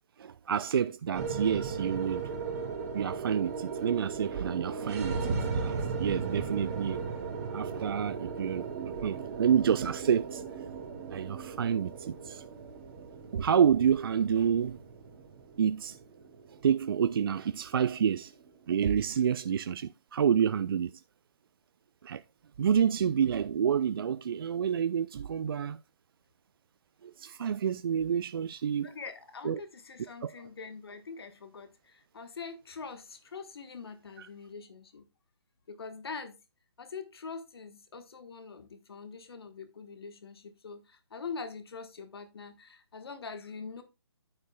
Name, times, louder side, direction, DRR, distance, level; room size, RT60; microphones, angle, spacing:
voice 1, 0.2-2.3 2.9-7.0 7.5-10.4 11.1-12.4 13.3-14.8 15.6-16.0 16.6-18.3 18.7-21.0 22.0-22.2 22.6-25.8 27.0-28.9 29.4-29.6 30.2-30.3 34.2-34.3, right 8 dB, 55° right, 0.4 m, -28 dB
sound 1, 1.1-19.5, right 5 dB, 35° right, 2.6 m, -37 dB
voice 2, 28.8-35.1 35.7-36.4 36.8-43.8, left 5 dB, 60° left, 1.4 m, -43 dB
9.4 x 8.8 x 2.3 m
figure-of-eight pair, 140°, 14 cm